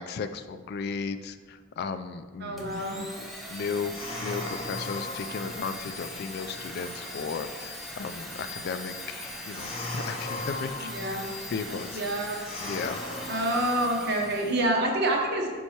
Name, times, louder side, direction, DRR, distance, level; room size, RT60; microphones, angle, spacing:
voice 1, 0.0-12.0 12.6-13.0, left 5 dB, 55° left, 10 dB, 0.3 m, -35 dB
voice 2, 2.4-3.0 10.8-11.2 11.9-12.4 13.3-15.5, right 1 dB, 55° right, 0 dB, 1.0 m, -27 dB
Domestic sounds home sounds, 2.6-14.7, left 1 dB, ahead, 0.7 m, -40 dB
sound 1, 3.6-14.7, left 2 dB, 30° left, 1.0 m, -40 dB
5.5 x 4.5 x 4.3 m, 1.5 s
head